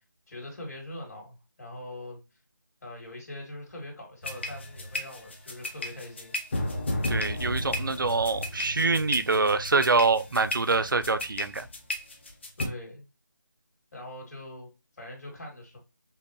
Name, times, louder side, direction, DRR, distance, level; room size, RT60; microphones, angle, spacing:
voice 1, 0.3-2.2 2.8-6.3 12.6-13.0 13.9-14.7 15.0-15.8, left 1 dB, 50° left, 2.5 m, -42 dB
sound 1, 4.2-12.6, left 1 dB, 35° left, 0.9 m, -33 dB
voice 2, 7.1-11.7, right 4 dB, 75° right, 0.6 m, -25 dB
5.5 x 2.2 x 2.9 m
figure-of-eight pair, 170°, 11 cm